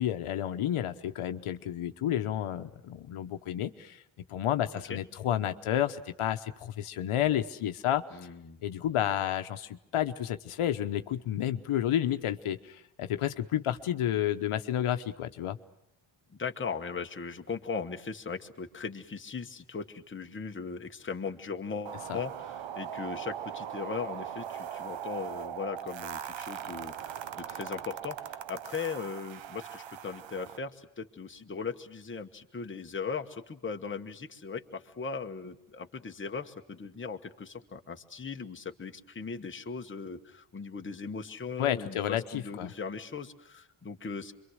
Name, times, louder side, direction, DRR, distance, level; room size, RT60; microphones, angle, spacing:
voice 1, 0.0-4.0 4.3-8.0 8.6-15.6 22.1-22.2 41.6-42.7, left 11 dB, 85° left, 9 dB, 1.0 m, -31 dB
voice 2, 8.1-8.6 16.4-44.3, left 5 dB, 25° left, 4 dB, 1.2 m, -38 dB
sound 1, 21.9-30.6, right 9 dB, 65° right, 0.8 m, -40 dB
26.5 x 23.5 x 6.4 m, 0.86 s
wide cardioid pair, 135°, 49 cm